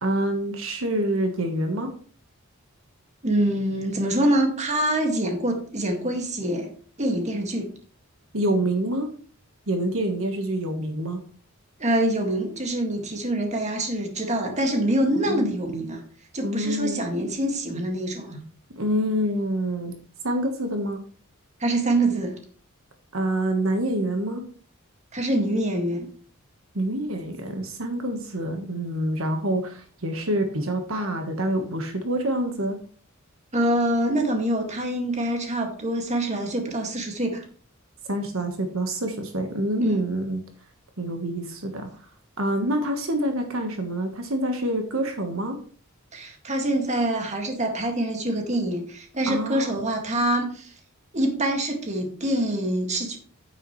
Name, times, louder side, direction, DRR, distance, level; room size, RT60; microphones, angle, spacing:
voice 1, 0.0-1.9 8.3-9.1 9.7-11.2 15.2-15.5 16.4-17.0 18.7-19.9 20.2-21.0 23.1-24.4 26.7-32.8 38.1-40.4 41.0-41.9 42.4-45.6 49.3-49.7, right 1 dB, 70° right, 5 dB, 1.4 m, -26 dB
voice 2, 3.2-6.7 7.0-7.7 11.8-16.0 16.3-18.4 21.6-22.4 25.1-26.1 33.5-37.4 39.8-40.0 46.1-50.7 51.1-53.2, right 1 dB, 35° right, 3 dB, 2.0 m, -25 dB
9.5 x 9.0 x 3.2 m, 0.44 s
head